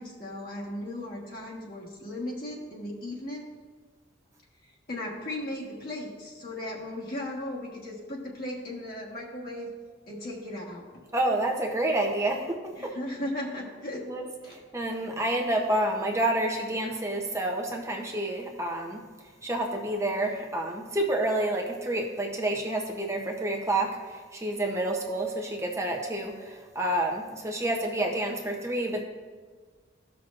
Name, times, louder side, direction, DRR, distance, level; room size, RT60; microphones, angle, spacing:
voice 1, 0.0-3.5 4.6-9.7 10.1-11.0 12.7-14.1 14.4-14.6, left 1 dB, 50° left, -4 dB, 1.4 m, -37 dB
voice 2, 11.1-12.9 14.1-14.2 14.5-19.0 19.4-29.0, right 1 dB, 15° right, 1 dB, 0.7 m, -29 dB
14.5 x 6.0 x 2.5 m, 1.5 s
head